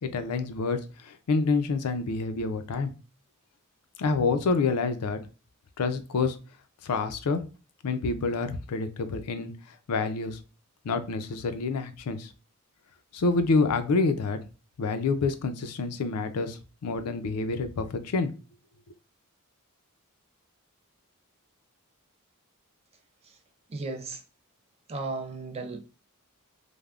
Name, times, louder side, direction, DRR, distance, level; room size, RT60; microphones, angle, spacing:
voice 1, 0.0-2.9 4.0-5.2 5.8-6.4 6.8-7.4 7.8-9.5 9.9-10.4 10.8-12.3 13.1-14.4 14.8-18.3, left 4 dB, 85° left, 0.4 m, -27 dB
voice 2, 23.7-24.2 24.9-25.8, right 3 dB, 25° right, 0.3 m, -35 dB
3.3 x 2.1 x 2.3 m
head